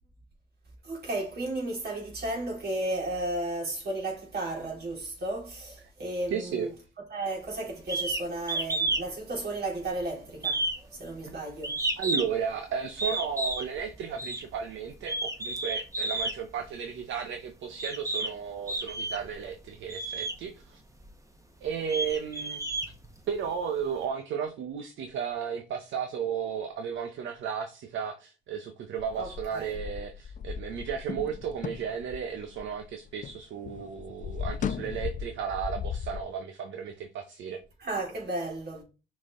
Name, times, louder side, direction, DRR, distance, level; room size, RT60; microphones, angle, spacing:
voice 1, 0.8-6.7 7.1-10.7 10.9-11.8 29.1-29.8 37.8-38.8, right 2 dB, 55° right, 3.1 m, -34 dB
voice 2, 6.3-6.7 11.2-11.3 12.0-20.8 21.6-22.6 23.3-37.6, right 7 dB, 75° right, 0.8 m, -34 dB
sound 1, 7.9-8.2 8.5-9.1 9.4-10.0 10.4-12.4 13.0-13.7 14.2-14.4 15.0-16.4 17.2-17.3 17.8-18.3 18.7-19.3 19.9-20.4 21.0-21.1 21.6-23.4, right 2 dB, 15° right, 1.2 m, -31 dB
sound 2, 29.0-33.4 33.7-36.2, left 7 dB, 40° left, 0.4 m, -36 dB
6.0 x 4.3 x 3.7 m
cardioid pair, 90°, 20 cm